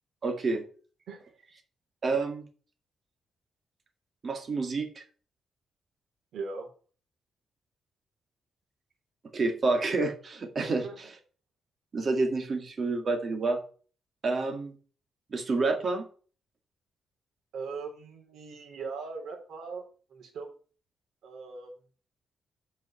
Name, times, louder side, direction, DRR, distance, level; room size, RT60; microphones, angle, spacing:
voice 1, 0.2-0.6 2.0-2.5 4.2-5.0 9.3-10.8 11.9-13.6 14.2-14.7 15.3-16.0, right 3 dB, 35° right, 5 dB, 1.9 m, -28 dB
voice 2, 6.3-6.7 10.6-11.0 17.5-20.5 21.2-21.7, right 4 dB, 80° right, 2 dB, 3.4 m, -40 dB
8.3 x 5.4 x 5.7 m, 0.39 s
wide cardioid pair, 150°, 0 cm